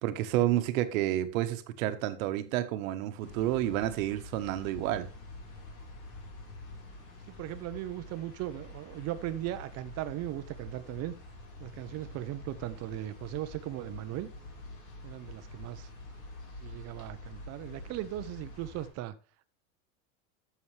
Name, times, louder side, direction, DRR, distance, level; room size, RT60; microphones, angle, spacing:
voice 1, 0.0-5.1, right 13 dB, 75° right, 10 dB, 1.4 m, -30 dB
sound 1, 3.2-18.9, left 2 dB, 45° left, 4.3 m, -47 dB
voice 2, 7.3-11.1 11.6-14.3 15.0-15.9 16.6-19.1, right 14 dB, 40° right, 13 dB, 0.8 m, -38 dB
11.5 x 7.2 x 3.3 m, 0.36 s
supercardioid pair, 150°, 41 cm